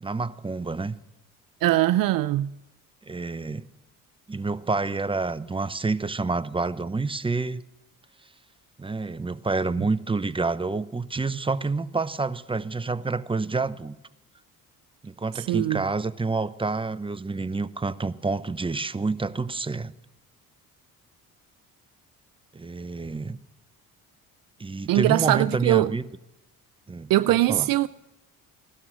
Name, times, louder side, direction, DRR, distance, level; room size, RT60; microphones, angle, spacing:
voice 1, 0.0-0.9 3.1-3.6 4.3-7.6 8.8-13.9 15.0-19.9 22.5-23.4 24.6-26.0 26.9-27.7, right 3 dB, 15° right, 0.7 m, -28 dB
voice 2, 1.6-2.5 15.4-15.8 24.9-25.9 27.1-27.9, right 15 dB, 65° right, 0.5 m, -21 dB
17.0 x 12.5 x 6.3 m
cardioid pair, 80°, 36 cm